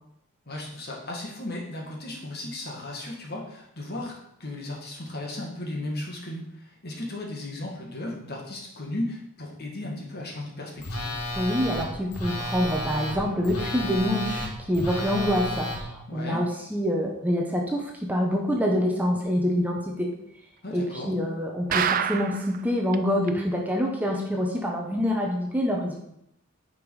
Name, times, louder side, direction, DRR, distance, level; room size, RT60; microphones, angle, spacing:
voice 1, 0.5-11.1 16.1-16.4 20.6-21.1, left 1 dB, 45° left, -1 dB, 1.9 m, -35 dB
Telephone, 10.8-15.8, left 1 dB, 85° left, 1.8 m, -32 dB
voice 2, 11.4-20.1 20.7-26.0, equal, 5° right, 0 dB, 0.9 m, -26 dB
sound 1, 21.7-22.6 22.9-23.0 23.3-23.4 23.8-23.9, right 8 dB, 40° right, 0.4 m, -26 dB
9.2 x 5.1 x 4.9 m, 0.79 s
head